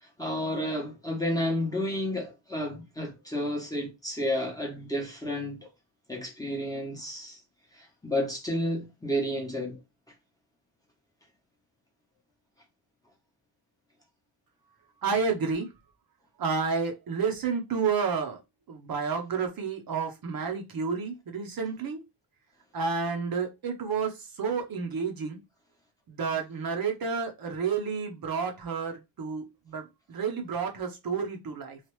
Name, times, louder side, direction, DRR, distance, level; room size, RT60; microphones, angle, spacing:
voice 1, 0.0-5.7 6.1-7.4 7.7-9.8, equal, 10° left, 0.8 m, -31 dB
voice 2, 15.0-15.7 16.4-18.4 18.7-22.0 22.7-25.4 26.1-31.8, right 5 dB, 45° right, 0.7 m, -30 dB
3.1 x 2.4 x 3.0 m
cardioid pair, 145°, 49 cm